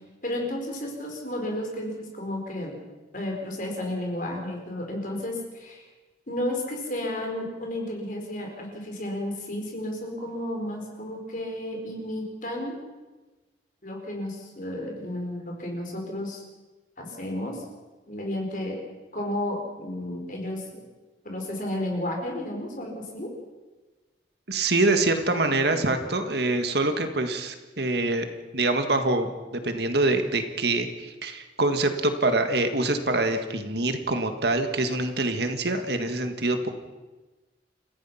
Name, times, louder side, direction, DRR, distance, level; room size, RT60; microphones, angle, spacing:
voice 1, 0.2-2.8 3.1-5.8 6.3-12.8 13.8-16.4 17.0-17.6 18.1-18.8 19.1-20.8 21.2-23.3, left 1 dB, 45° left, 1 dB, 4.9 m, -32 dB
voice 2, 24.5-28.3 28.5-29.3 29.6-36.7, right 2 dB, 60° right, 7 dB, 1.7 m, -25 dB
29.0 x 15.5 x 5.8 m, 1.2 s
head